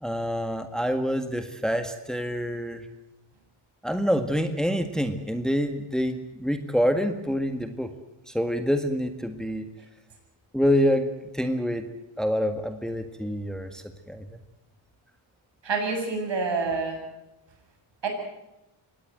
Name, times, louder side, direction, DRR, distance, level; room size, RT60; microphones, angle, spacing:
voice 1, 0.0-2.9 3.8-7.9 8.3-9.7 10.5-11.9 12.2-14.4, equal, ahead, 7 dB, 1.8 m, -27 dB
voice 2, 15.6-17.0 18.0-18.1, right 4 dB, 60° right, 3 dB, 7.9 m, -27 dB
24.0 x 18.5 x 7.8 m, 0.94 s
cardioid pair, 90°, 48 cm